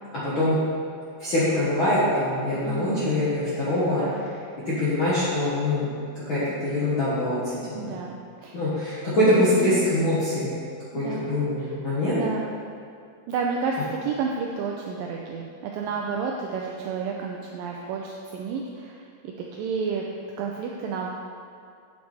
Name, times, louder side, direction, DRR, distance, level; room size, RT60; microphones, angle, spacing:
voice 1, 0.2-0.6 1.2-4.0 4.6-5.9 6.3-8.0 8.5-10.5 10.9-12.2, left 1 dB, 60° left, -11 dB, 1.3 m, -24 dB
voice 2, 2.6-3.1 4.0-4.2 7.7-8.6 9.6-9.7 10.9-11.3 11.6-11.8 12.1-12.6 13.3-20.1 20.4-21.1, right 5 dB, 85° right, 0 dB, 2.0 m, -31 dB
9.1 x 7.9 x 3.4 m, 2.3 s
omnidirectional pair, 4.6 m